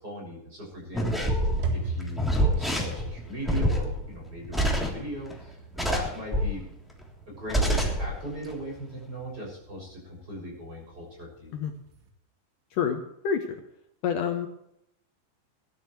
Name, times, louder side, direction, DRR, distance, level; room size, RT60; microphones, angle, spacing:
voice 1, 0.0-1.3 1.7-6.7 7.3-11.5, equal, 20° right, -1 dB, 6.9 m, -39 dB
sound 1, 0.7-12.1, right 3 dB, 80° right, 4.4 m, -40 dB
sound 2, 0.9-5.3 5.7-6.6 7.0-7.1 7.5-8.1 8.4-8.5, equal, ahead, 2.0 m, -26 dB
voice 2, 12.7-13.6 14.0-14.5, left 7 dB, 90° left, 5 dB, 1.8 m, -28 dB
21.0 x 12.0 x 3.2 m, 0.79 s
omnidirectional pair, 5.4 m